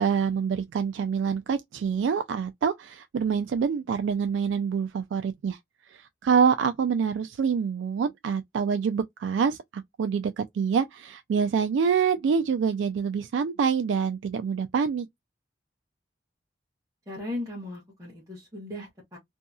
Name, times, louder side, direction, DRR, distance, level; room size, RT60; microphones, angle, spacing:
voice 1, 0.0-5.6 5.9-15.1, right 6 dB, 85° right, 0.3 m, -26 dB
voice 2, 17.1-19.2, left 1 dB, 20° right, 1.0 m, -37 dB
2.7 x 2.7 x 2.3 m
head